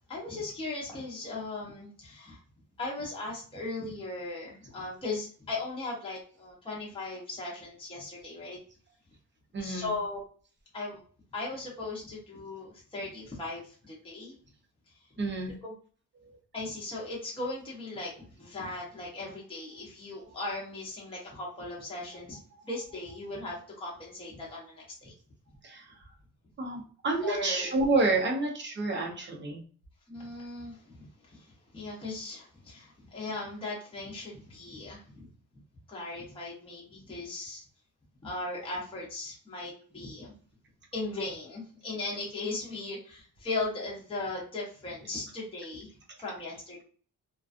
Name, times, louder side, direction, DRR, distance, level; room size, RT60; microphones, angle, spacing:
voice 1, 0.1-2.4 2.8-8.6 9.6-10.2 10.7-11.0 11.3-14.4 14.9-15.2 15.6-15.7 16.5-22.4 22.6-25.1 27.2-27.7 28.2-28.3 30.1-35.3 35.9-37.6 38.2-40.3 40.9-46.8, left 2 dB, 15° left, -4 dB, 0.7 m, -38 dB
voice 2, 9.5-9.9 15.2-15.5 16.3-16.4 25.6-25.8 26.6-29.6, right 3 dB, 35° right, 1 dB, 0.6 m, -29 dB
2.4 x 2.3 x 2.4 m, 0.42 s
wide cardioid pair, 170°, 33 cm